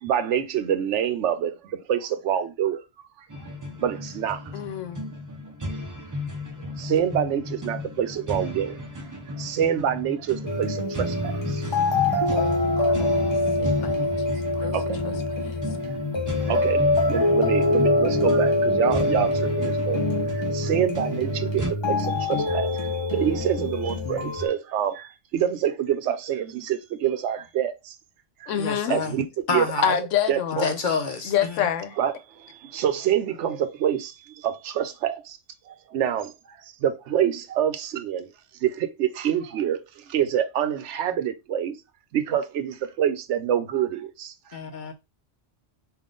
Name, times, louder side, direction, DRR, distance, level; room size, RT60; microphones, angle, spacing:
voice 1, 0.0-2.8 3.2-3.3 3.8-4.5 6.8-8.8 9.4-11.6 12.3-12.4 14.3-15.0 15.3-15.5 15.8-15.9 16.4-28.0 28.4-28.5 28.9-29.3 29.5-29.9 30.3-30.7 32.0-35.4 35.7-38.3 38.6-41.8 42.1-44.6, right 9 dB, 75° right, 0.9 m, -27 dB
sound 1, 3.3-21.7, left 2 dB, 30° right, 0.3 m, -34 dB
voice 2, 4.5-5.1 12.8-13.1 13.6-14.7 15.4-15.6 28.5-29.0 29.8-30.8 31.2-32.0, left 9 dB, 85° left, 1.0 m, -27 dB
sound 2, 10.4-24.5, left 2 dB, 25° left, 0.9 m, -24 dB
voice 3, 28.6-29.2 29.5-30.0 30.6-31.7 44.5-44.9, left 4 dB, 50° left, 0.7 m, -28 dB
3.6 x 2.5 x 3.6 m
omnidirectional pair, 1.2 m